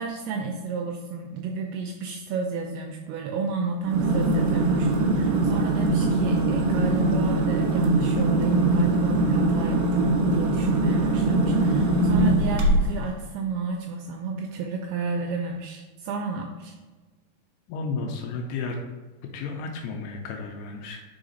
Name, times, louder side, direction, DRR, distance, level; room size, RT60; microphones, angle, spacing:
voice 1, 0.0-16.7, right 4 dB, 85° right, 2 dB, 2.3 m, -31 dB
sound 1, 3.8-13.1, right 2 dB, 65° right, 2.1 m, -22 dB
voice 2, 17.7-18.8 19.3-21.0, left 4 dB, 80° left, 2 dB, 2.5 m, -32 dB
5.0 x 4.8 x 3.9 m, 1.3 s
omnidirectional pair, 4.9 m